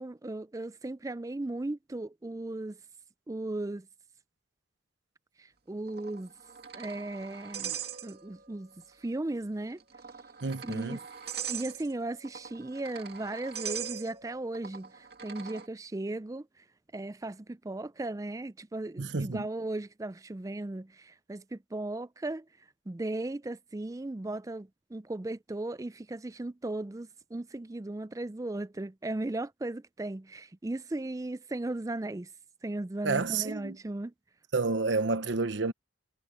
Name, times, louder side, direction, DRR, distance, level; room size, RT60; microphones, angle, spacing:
voice 1, 0.0-2.8 3.3-3.9 5.4-6.3 6.7-8.7 9.0-9.8 10.6-11.0 11.5-16.5 16.9-22.4 22.9-32.3 32.6-34.1, right 2 dB, 15° right, 0.4 m, -36 dB
sound 1, 5.9-8.5 8.8-8.9 9.8-15.7, right 8 dB, 55° right, 2.5 m, -41 dB
voice 2, 10.4-11.0 19.0-19.5 33.0-33.8 34.5-35.7, right 3 dB, 70° right, 0.9 m, -30 dB
head